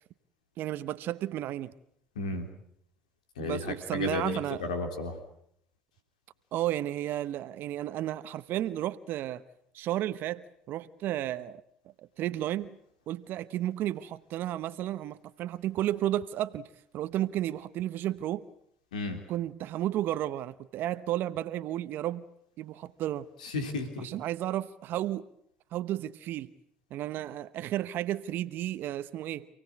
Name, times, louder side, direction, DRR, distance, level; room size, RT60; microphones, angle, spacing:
voice 1, 0.6-1.7 3.4-4.6 6.5-9.4 9.7-11.6 12.2-12.8 13.1-16.7 16.9-18.4 19.3-22.3 22.6-23.3 24.0-25.3 25.7-26.5 26.9-29.5, right 13 dB, 60° right, 0.9 m, -32 dB
voice 2, 2.1-2.5 3.4-5.1 18.9-19.2 23.4-24.1, left 3 dB, 90° left, 3.3 m, -33 dB
28.5 x 17.5 x 8.3 m
hypercardioid pair, 70°, 4 cm